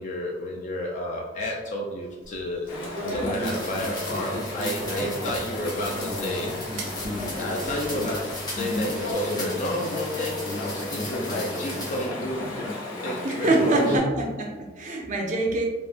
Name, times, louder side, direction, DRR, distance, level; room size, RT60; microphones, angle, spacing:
voice 1, 0.0-2.7 3.1-6.5 7.4-12.5 13.0-13.8, equal, 40° left, -1 dB, 0.3 m, -31 dB
sound 1, 2.2-9.1, equal, 85° right, 0.7 m, -41 dB
Chatter / Stream, 2.7-14.0, left 1 dB, 75° left, 0.8 m, -32 dB
sound 2, 3.4-12.1, left 1 dB, 20° left, 0.7 m, -37 dB
voice 2, 13.2-15.7, right 2 dB, 40° right, 0 dB, 0.5 m, -25 dB
3.4 x 2.1 x 2.4 m, 1.3 s
head